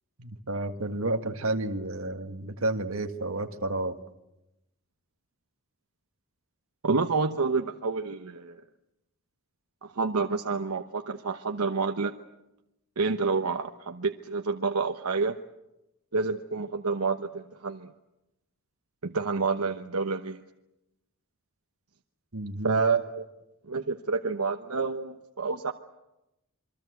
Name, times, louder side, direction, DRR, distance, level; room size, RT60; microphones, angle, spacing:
voice 1, 0.2-4.0 22.3-22.8, right 2 dB, 65° right, 6 dB, 1.8 m, -31 dB
voice 2, 6.8-8.6 9.8-12.1 13.0-15.4 16.1-17.9 19.0-20.4 22.6-23.2 23.7-25.7, right 4 dB, 80° right, 6 dB, 1.1 m, -28 dB
27.5 x 23.0 x 8.1 m, 0.92 s
head